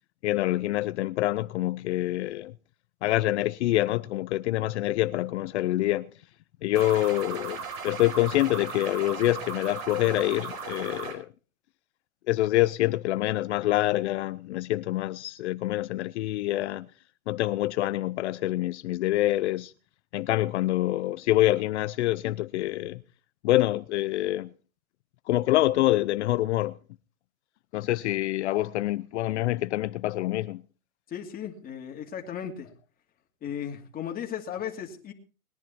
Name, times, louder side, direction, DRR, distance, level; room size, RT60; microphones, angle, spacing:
voice 1, 0.2-2.5 3.0-6.1 6.6-11.3 12.3-16.9 17.3-19.7 20.1-23.0 23.4-24.5 25.3-26.8 27.7-30.6, left 16 dB, 50° left, 0.6 m, -26 dB
sound 1, 6.7-11.1, right 5 dB, 65° right, 5.0 m, -37 dB
voice 2, 31.1-32.7 33.4-35.1, left 8 dB, 20° left, 2.5 m, -36 dB
21.0 x 10.5 x 4.4 m
hypercardioid pair, 140°, 44 cm